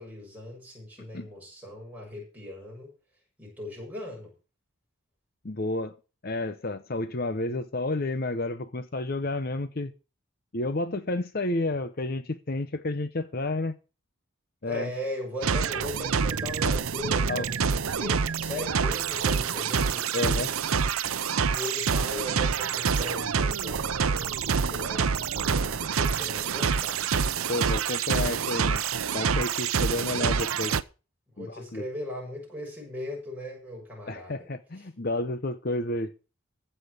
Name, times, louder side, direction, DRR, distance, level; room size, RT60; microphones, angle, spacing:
voice 1, 0.0-2.9 3.4-4.3 14.7-20.5 21.5-27.0 30.1-30.3 31.4-34.5, left 1 dB, 10° right, 6.9 m, -38 dB
voice 2, 5.4-5.9 6.2-9.9 10.5-13.7 14.6-14.9 17.3-17.5 20.1-20.5 27.5-28.8 29.1-30.7 31.4-31.8 34.1-36.1, left 2 dB, 45° left, 0.8 m, -30 dB
sound 1, 15.4-30.8, right 6 dB, 85° right, 0.7 m, -27 dB
15.0 x 5.7 x 8.0 m
head